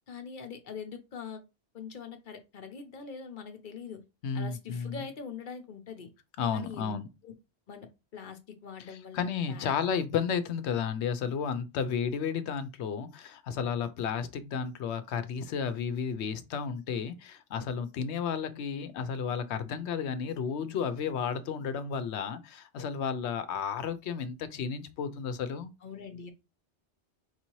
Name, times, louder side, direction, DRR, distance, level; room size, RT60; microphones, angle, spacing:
voice 1, 0.1-1.4 1.7-4.0 4.3-6.1 6.5-7.0 7.2-7.3 7.7-9.7 25.8-26.3, left 6 dB, 50° left, 0.8 m, -43 dB
voice 2, 4.2-5.0 6.4-7.1 8.9-25.7, left 6 dB, 80° left, 0.9 m, -32 dB
4.6 x 2.7 x 3.0 m
omnidirectional pair, 1.1 m